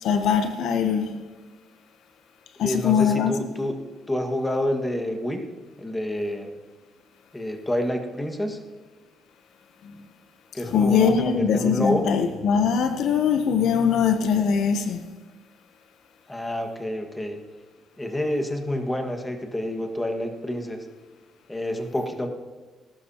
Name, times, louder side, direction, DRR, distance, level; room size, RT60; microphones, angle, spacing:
voice 1, 0.0-1.1 2.6-3.4 9.8-10.0 10.7-15.0, left 6 dB, 80° left, 8 dB, 0.9 m, -22 dB
voice 2, 2.6-3.7 4.1-5.4 5.8-6.5 7.3-8.6 10.5-12.0 16.3-17.4 18.0-20.8 21.5-22.3, left 1 dB, 10° left, 4 dB, 1.7 m, -28 dB
19.0 x 12.5 x 2.9 m, 1.2 s
cardioid pair, 90°, 0 cm